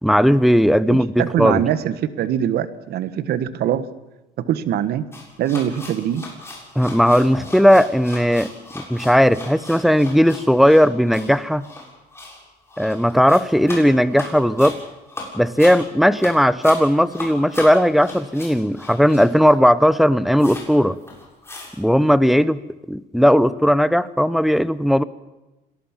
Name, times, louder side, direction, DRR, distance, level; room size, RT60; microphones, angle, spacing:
voice 1, 0.0-1.6 6.8-8.5 8.7-11.6 12.8-14.8 15.3-21.0 21.8-22.6 22.9-25.0, equal, ahead, 15 dB, 0.8 m, -16 dB
voice 2, 0.8-3.9 4.4-5.1 5.4-6.3, right 10 dB, 70° right, 14 dB, 1.4 m, -23 dB
sound 1, 5.1-19.7 19.9-20.0 20.4-20.7 21.0-21.8, left 2 dB, 15° left, 7.3 m, -37 dB
25.0 x 18.5 x 7.3 m, 1.0 s
cardioid pair, 110°, 17 cm